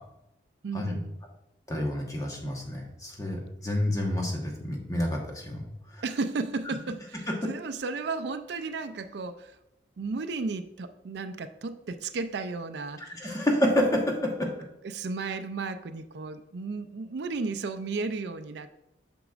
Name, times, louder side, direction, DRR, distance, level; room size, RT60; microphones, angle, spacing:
voice 1, 0.6-1.2 6.0-9.6 10.0-13.4 14.8-18.7, right 4 dB, 65° right, 11 dB, 0.4 m, -34 dB
voice 2, 1.7-5.7 5.9-6.0 7.3-7.4 13.1-14.5, left 1 dB, 20° left, 0 dB, 1.1 m, -28 dB
8.1 x 6.0 x 2.4 m, 0.93 s
head